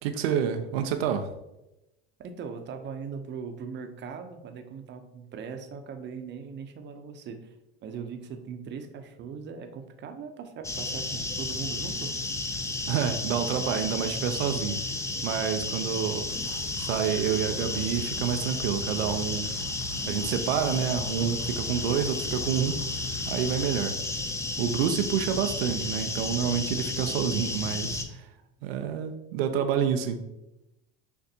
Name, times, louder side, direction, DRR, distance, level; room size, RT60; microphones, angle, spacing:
voice 1, 0.0-1.3 12.9-14.8 15.2-16.3 16.8-19.6 20.1-22.8 23.3-24.0 24.6-28.3 28.6-30.2, right 8 dB, 90° right, 7 dB, 0.4 m, -28 dB
voice 2, 2.2-7.5 7.8-12.1, right 6 dB, 40° right, 7 dB, 0.6 m, -39 dB
sound 1, 10.6-28.1, left 2 dB, 10° left, 0.4 m, -32 dB
sound 2, 16.3-23.7, left 1 dB, 45° left, 0.7 m, -42 dB
6.6 x 2.5 x 2.7 m, 0.93 s
supercardioid pair, 100°, 30 cm